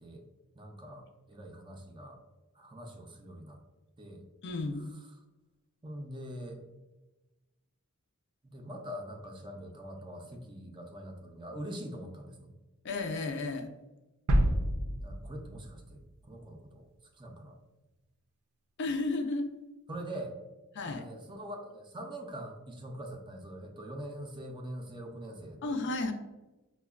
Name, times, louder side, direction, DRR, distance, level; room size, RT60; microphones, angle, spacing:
voice 1, 0.6-2.2 2.5-3.6 4.0-4.2 4.7-5.1 5.8-6.6 8.4-12.5 15.0-16.9 17.1-17.6 19.9-20.4 20.8-25.8, right 1 dB, 20° right, 2 dB, 0.4 m, -43 dB
voice 2, 4.4-4.9 12.8-13.7 18.8-19.5 20.8-21.0 25.6-26.1, left 3 dB, 55° left, 5 dB, 0.4 m, -33 dB
sound 1, 14.3-16.2 16.6-16.7, equal, 75° right, 0.5 m, -29 dB
5.8 x 2.1 x 2.3 m, 1.1 s
head